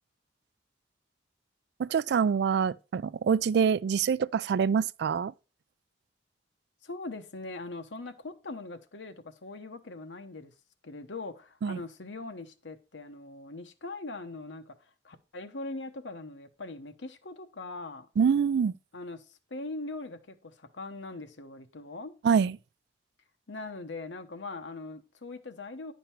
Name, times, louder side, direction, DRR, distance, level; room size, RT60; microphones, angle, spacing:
voice 1, 1.8-5.3 11.6-11.8 18.2-18.7 22.2-22.6, right 6 dB, 65° right, 0.3 m, -25 dB
voice 2, 6.8-10.5 10.8-14.7 15.0-18.1 18.9-22.1 23.5-25.9, left 2 dB, 85° left, 1.0 m, -41 dB
10.0 x 5.3 x 4.4 m
head